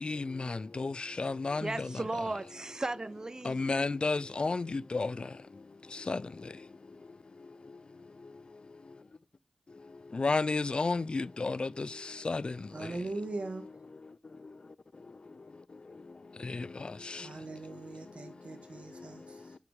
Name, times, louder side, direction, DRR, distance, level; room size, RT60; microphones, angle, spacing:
voice 1, 0.0-1.9 3.4-5.1 6.1-6.2 10.1-11.9 12.2-12.5 16.4-16.7 17.1-17.2, left 3 dB, 50° left, 0.4 m, -31 dB
voice 2, 1.6-3.7, right 2 dB, 30° right, 0.4 m, -36 dB
voice 3, 12.7-13.6 17.2-19.6, right 2 dB, 60° right, 1.7 m, -40 dB
9.1 x 5.9 x 3.6 m
wide cardioid pair, 65°, 2 cm